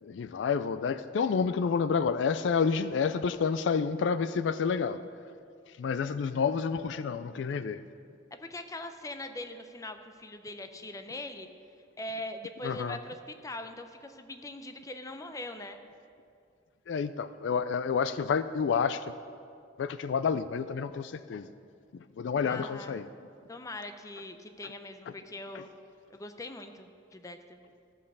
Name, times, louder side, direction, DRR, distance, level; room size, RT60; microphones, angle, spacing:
voice 1, 0.0-5.0 5.8-7.8 12.6-13.0 16.9-19.1 19.8-21.5 21.9-23.1, left 6 dB, 80° left, 13 dB, 0.4 m, -29 dB
voice 2, 8.3-11.5 12.0-15.8 22.4-23.0 23.5-25.7 26.1-27.6, left 2 dB, 20° left, 7 dB, 0.6 m, -41 dB
14.0 x 5.4 x 6.7 m, 2.4 s
head